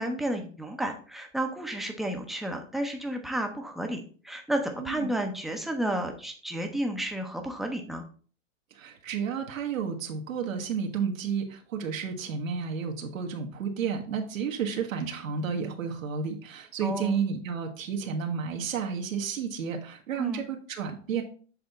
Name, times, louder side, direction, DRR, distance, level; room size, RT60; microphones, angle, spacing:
voice 1, 0.0-8.0 16.8-17.2 20.2-20.4, right 1 dB, ahead, 3 dB, 0.6 m, -31 dB
voice 2, 8.7-21.2, right 6 dB, 85° right, 2 dB, 1.3 m, -31 dB
7.6 x 3.5 x 4.1 m, 0.42 s
hypercardioid pair, 130°, 39 cm